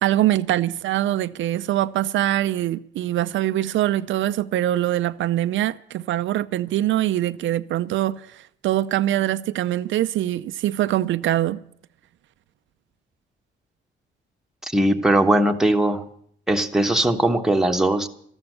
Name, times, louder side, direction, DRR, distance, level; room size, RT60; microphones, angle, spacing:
voice 1, 0.0-11.6, right 13 dB, 75° right, 0.5 m, -23 dB
voice 2, 14.6-16.0 16.5-18.1, right 1 dB, ahead, 1.2 m, -20 dB
13.5 x 12.5 x 6.7 m
cardioid pair, 90°, 20 cm